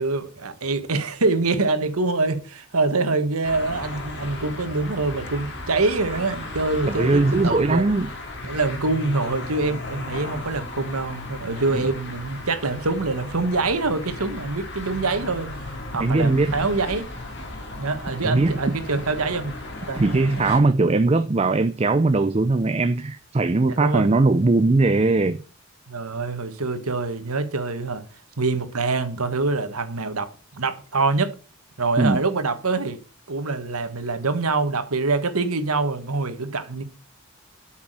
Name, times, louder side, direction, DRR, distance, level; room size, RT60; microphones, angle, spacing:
voice 1, 0.0-7.9 8.4-15.5 15.9-17.1 17.8-19.5 19.9-20.0 23.6-24.1 25.9-28.0 28.4-31.3 31.8-33.0 33.3-36.8, right 3 dB, 85° right, 1.5 m, -25 dB
sound 1, 3.4-20.6, left 2 dB, 55° left, 2.2 m, -35 dB
voice 2, 6.9-8.1 16.0-16.6 18.2-18.6 20.0-25.4 32.0-32.2, right 3 dB, 30° right, 0.5 m, -20 dB
8.4 x 6.1 x 6.3 m
head